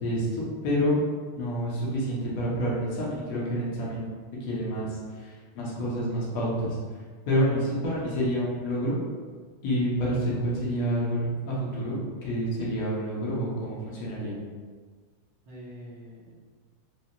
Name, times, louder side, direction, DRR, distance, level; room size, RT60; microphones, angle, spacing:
voice 1, 0.0-1.0 1.4-4.1 4.4-6.8 7.3-9.0 9.6-14.3, equal, 45° left, -5 dB, 1.0 m, -28 dB
voice 2, 7.7-8.1 15.5-16.3, equal, 35° right, -7 dB, 1.0 m, -46 dB
3.2 x 2.8 x 3.0 m, 1.5 s
supercardioid pair, 170°, 0 cm